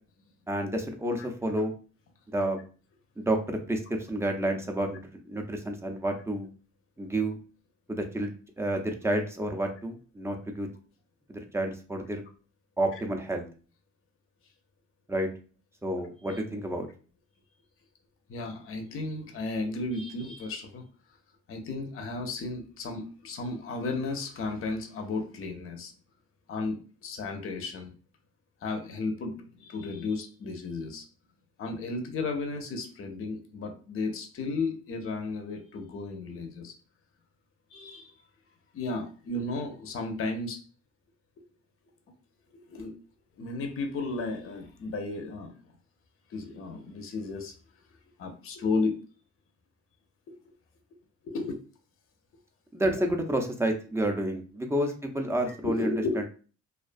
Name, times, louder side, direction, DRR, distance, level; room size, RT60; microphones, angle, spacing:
voice 1, 0.5-1.7 2.3-2.6 3.2-6.5 7.0-7.4 7.9-10.7 11.3-12.2 12.8-13.5 15.1-15.3 15.8-16.9 52.7-56.2, right 1 dB, 10° right, 3 dB, 0.4 m, -30 dB
voice 2, 18.3-20.8 21.5-25.9 26.5-27.9 28.6-31.1 31.6-36.7 37.7-38.1 38.7-40.6 42.5-42.9 43.4-45.6 46.3-47.5 48.2-49.0 50.3-50.4 51.2-51.5 55.5-56.2, left 3 dB, 45° left, 5 dB, 0.6 m, -34 dB
2.4 x 2.2 x 2.5 m, 0.38 s
cardioid pair, 90°, 30 cm